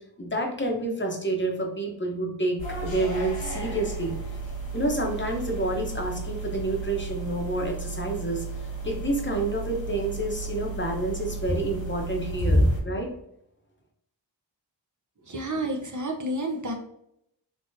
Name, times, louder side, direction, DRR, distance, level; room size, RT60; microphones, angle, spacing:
voice 1, 0.2-4.1 4.7-8.4 8.8-13.1, right 1 dB, 25° left, 1 dB, 0.8 m, -29 dB
sound 1, 2.6-12.8, right 1 dB, 85° left, 1.2 m, -31 dB
voice 2, 15.2-16.7, right 1 dB, 40° right, 2 dB, 0.7 m, -30 dB
3.8 x 2.8 x 2.6 m, 0.75 s
wide cardioid pair, 50°, 45 cm